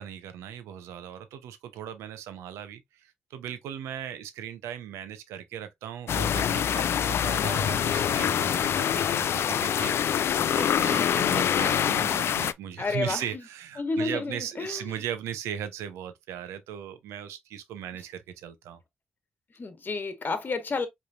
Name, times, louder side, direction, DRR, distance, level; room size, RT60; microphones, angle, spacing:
voice 1, 0.0-18.8, right 9 dB, 85° right, 0.7 m, -38 dB
sound 1, 6.1-12.5, left 9 dB, 65° left, 0.3 m, -25 dB
voice 2, 10.8-11.4 12.8-13.4 13.8-15.0 19.5-20.9, left 3 dB, 45° left, 1.3 m, -31 dB
5.0 x 3.3 x 2.4 m
supercardioid pair, 50°, 5 cm